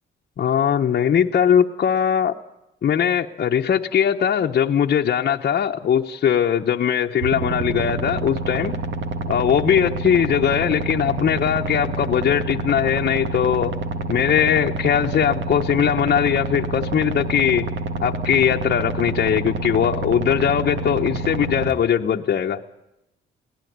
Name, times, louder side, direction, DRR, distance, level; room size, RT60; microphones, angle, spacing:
voice 1, 0.4-2.4 2.8-8.8 9.3-13.7 14.1-17.7 18.0-22.6, left 8 dB, 50° left, 0 dB, 1.0 m, -20 dB
sound 1, 7.2-21.7, right 3 dB, 70° right, 2.0 m, -28 dB
22.5 x 17.0 x 9.4 m, 0.91 s
cardioid pair, 90°, 20 cm